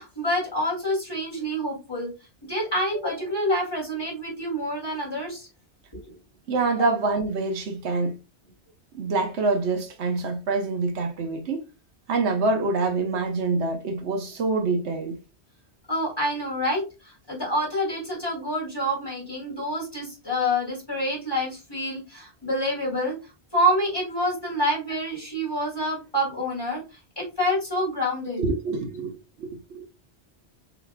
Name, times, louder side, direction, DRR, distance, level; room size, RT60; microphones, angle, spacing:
voice 1, 0.0-2.1 2.4-5.5 6.0-6.1 6.8-6.9 15.9-23.2 23.5-26.8 27.2-28.4, equal, 20° left, 2.5 m, -27 dB
voice 2, 6.5-8.1 8.9-11.6 12.1-15.2 28.4-29.9, right 3 dB, 80° right, 1.1 m, -26 dB
5.9 x 2.9 x 2.2 m
omnidirectional pair, 1.2 m